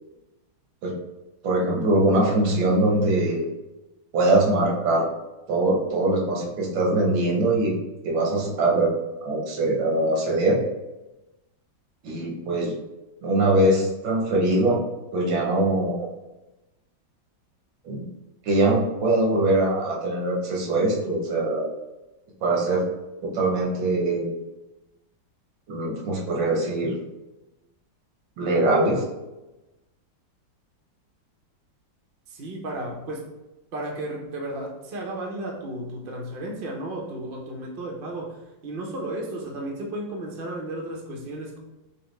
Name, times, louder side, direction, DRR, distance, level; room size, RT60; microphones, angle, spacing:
voice 1, 1.4-3.4 4.1-5.1 5.5-7.7 8.0-8.9 9.2-10.6 12.0-12.7 13.2-14.8 15.1-16.1 17.8-18.0 18.5-21.7 22.4-22.8 23.2-24.3 25.7-26.9 28.4-29.0, right 2 dB, 80° right, -2 dB, 1.7 m, -22 dB
voice 2, 32.3-33.3 33.7-41.6, right 1 dB, 65° right, 0 dB, 0.5 m, -34 dB
5.5 x 2.0 x 3.2 m, 1.0 s
omnidirectional pair, 2.1 m